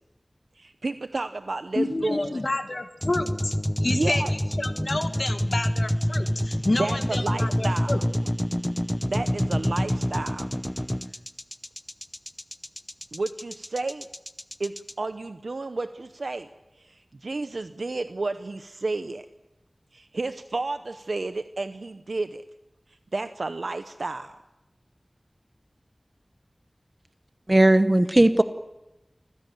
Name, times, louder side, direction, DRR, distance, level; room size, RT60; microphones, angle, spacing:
voice 1, 0.6-2.4 3.9-4.3 6.8-8.1 9.0-10.5 13.1-14.1 14.6-16.5 16.8-19.3 19.9-22.4 22.9-24.4, right 3 dB, 90° right, 10 dB, 0.7 m, -31 dB
voice 2, 1.7-3.5 3.8-8.0, left 2 dB, 55° left, 7 dB, 1.6 m, -29 dB
sound 1, 3.0-14.9, equal, 10° left, 0.8 m, -27 dB
voice 3, 27.5-28.4, right 1 dB, 30° right, 11 dB, 0.9 m, -17 dB
26.5 x 15.5 x 9.2 m, 1.0 s
wide cardioid pair, 55°, 0 cm